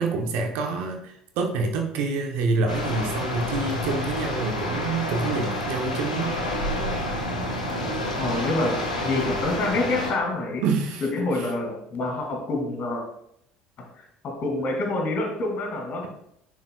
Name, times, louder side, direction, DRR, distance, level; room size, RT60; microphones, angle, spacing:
voice 1, 0.0-6.4 10.6-11.0 11.3-11.5, right 4 dB, 60° right, 4 dB, 0.9 m, -27 dB
sound 1, 2.7-10.1, left 1 dB, 85° left, 1.2 m, -29 dB
voice 2, 8.2-10.6 11.0-13.0 14.0-16.1, left 2 dB, 45° left, 1 dB, 2.4 m, -27 dB
10.5 x 4.8 x 2.3 m, 0.74 s
figure-of-eight pair, 60°, 4 cm